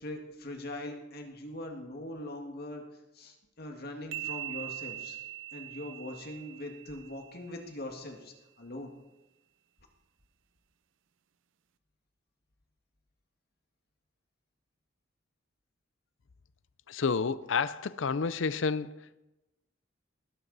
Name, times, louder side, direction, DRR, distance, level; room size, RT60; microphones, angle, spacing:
voice 1, 0.0-2.8 3.1-5.2 5.5-8.9, left 1 dB, 55° left, 1.9 m, -41 dB
sound 1, 4.1-7.7, right 14 dB, 70° right, 0.5 m, -42 dB
voice 2, 16.9-19.2, left 5 dB, 70° left, 0.6 m, -30 dB
19.5 x 11.5 x 4.1 m
head